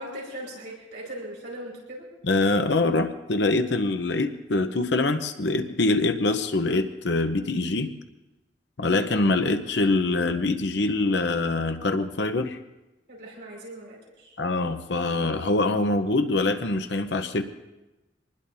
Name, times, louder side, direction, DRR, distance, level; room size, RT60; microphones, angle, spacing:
voice 1, 0.0-2.1 13.1-14.4, right 1 dB, 65° right, -3 dB, 5.2 m, -39 dB
voice 2, 2.3-7.9 8.8-12.6 14.4-17.4, left 2 dB, 70° left, 8 dB, 0.8 m, -24 dB
25.0 x 20.0 x 2.7 m, 1.0 s
head